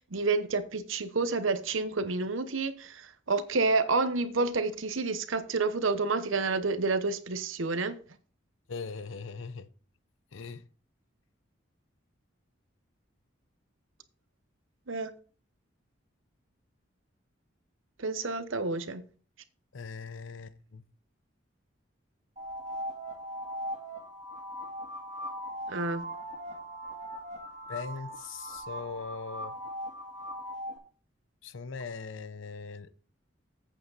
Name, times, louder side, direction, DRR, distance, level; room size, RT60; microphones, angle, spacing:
voice 1, 0.0-8.0 14.9-15.1 18.0-19.0 25.7-26.1, right 3 dB, 80° right, 0.9 m, -29 dB
voice 2, 8.7-9.7 10.3-10.6 19.7-20.8 27.7-29.6 31.4-32.9, left 4 dB, 75° left, 0.6 m, -40 dB
sound 1, 22.4-30.8, equal, 35° right, 2.1 m, -39 dB
8.5 x 8.0 x 4.0 m
head